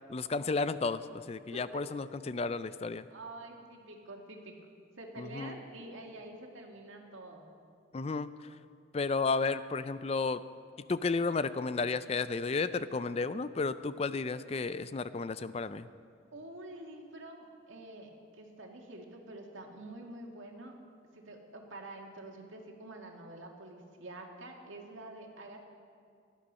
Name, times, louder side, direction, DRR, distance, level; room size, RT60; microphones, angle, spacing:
voice 1, 0.1-3.1 5.2-5.6 7.9-8.3 8.9-10.4 10.9-15.9, left 4 dB, 30° left, 14 dB, 0.4 m, -32 dB
voice 2, 1.5-1.8 3.1-4.5 5.0-7.5 16.3-20.8 21.1-25.7, right 2 dB, 80° right, 1 dB, 2.0 m, -47 dB
18.0 x 11.5 x 5.5 m, 2.4 s
head